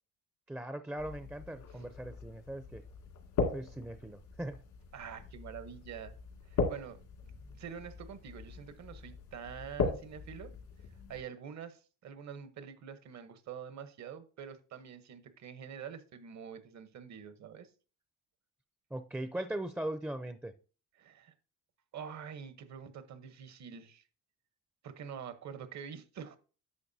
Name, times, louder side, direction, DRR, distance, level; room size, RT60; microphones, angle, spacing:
voice 1, 0.5-2.8 3.5-4.6 18.9-20.5, right 1 dB, 5° right, 0.5 m, -39 dB
sound 1, 1.0-11.2, left 4 dB, 85° left, 2.1 m, -39 dB
voice 2, 4.9-6.1 6.5-10.5 11.1-17.7 21.0-21.3 21.9-24.0 24.8-26.4, right 7 dB, 65° right, 1.0 m, -46 dB
10.5 x 6.6 x 2.7 m
cardioid pair, 90°, 30 cm